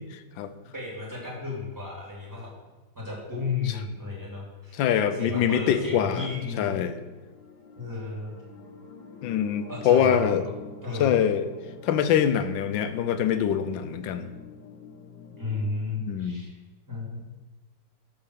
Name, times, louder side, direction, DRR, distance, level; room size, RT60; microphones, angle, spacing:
voice 1, 0.1-0.5 4.7-6.3 6.6-7.0 9.2-10.4 11.0-11.5 11.8-14.3 16.0-16.4, left 9 dB, 80° left, 10 dB, 1.4 m, -24 dB
voice 2, 0.7-2.5 2.9-4.8 5.2-6.8 7.8-8.4 9.7-10.3 10.8-11.3 15.4-16.5 16.9-17.3, left 3 dB, 10° right, -4 dB, 3.2 m, -33 dB
sound 1, 5.6-15.7, left 5 dB, 65° left, 1.7 m, -46 dB
12.0 x 4.3 x 6.6 m, 1.2 s
omnidirectional pair, 2.0 m